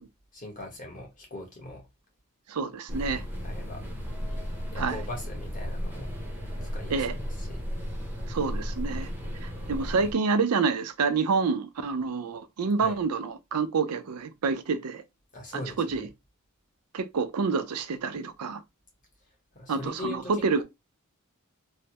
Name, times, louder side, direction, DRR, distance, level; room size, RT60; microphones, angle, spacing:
voice 1, 0.3-1.8 3.4-3.8 4.3-4.4 4.7-6.1 6.6-7.6 12.8-13.0 15.3-16.1 19.5-20.6, left 2 dB, 35° left, 1.2 m, -40 dB
voice 2, 2.5-3.3 4.8-5.0 6.9-7.2 8.3-9.1 9.4-15.0 15.5-16.1 16.9-18.6 19.7-20.6, right 4 dB, 90° right, 0.5 m, -28 dB
sound 1, 2.9-10.1, equal, 10° right, 0.7 m, -34 dB
3.2 x 2.0 x 2.8 m
head